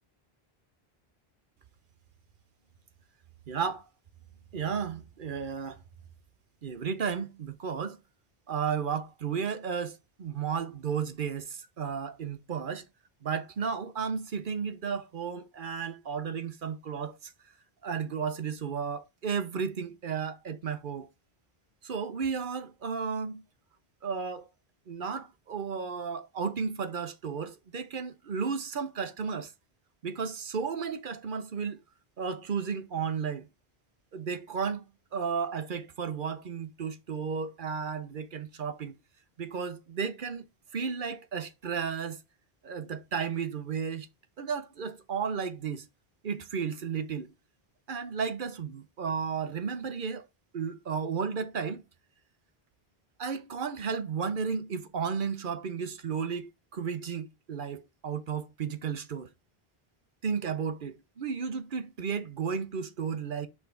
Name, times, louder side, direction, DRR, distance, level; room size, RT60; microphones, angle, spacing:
voice 1, 3.5-3.8 4.5-5.8 6.6-8.0 8.5-12.8 13.2-17.3 17.8-21.1 21.8-23.4 24.0-24.5 24.9-29.5 30.0-31.8 32.2-33.5 34.1-34.8 35.1-38.9 39.4-40.4 40.7-42.2 42.6-44.1 44.4-45.9 46.2-47.3 47.9-50.3 50.5-51.8 53.2-59.3 60.2-63.5, right 6 dB, 60° right, 0.9 m, -33 dB
5.7 x 3.7 x 4.5 m
omnidirectional pair, 1.0 m